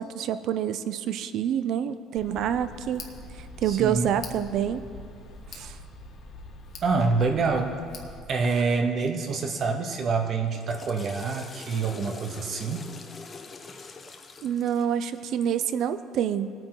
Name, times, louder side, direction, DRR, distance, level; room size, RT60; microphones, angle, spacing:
voice 1, 0.0-3.0 3.6-4.8 5.5-5.7 14.4-16.5, right 9 dB, 60° right, 12 dB, 0.6 m, -27 dB
Tick, 2.2-8.2, left 2 dB, 55° left, 1.5 m, -44 dB
voice 2, 3.7-4.1 6.8-7.8 8.3-12.9, right 4 dB, 40° right, 4 dB, 0.9 m, -26 dB
Water / Toilet flush, 10.4-15.7, left 4 dB, 25° left, 0.8 m, -44 dB
20.0 x 9.2 x 3.9 m, 2.2 s
cardioid pair, 135°, 0 cm